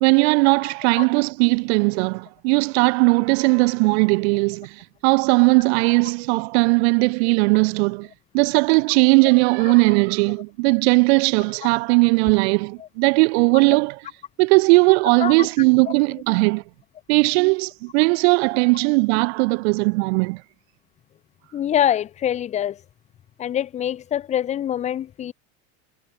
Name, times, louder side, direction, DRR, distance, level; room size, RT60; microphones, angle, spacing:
voice 1, 0.0-8.1 8.3-14.0 14.4-16.6 17.1-20.4, right 30 dB, 65° right, 0.6 m, -18 dB
voice 2, 21.5-22.8 23.4-25.3, left 10 dB, 20° left, 0.6 m, -24 dB
supercardioid pair, 160°, 36 cm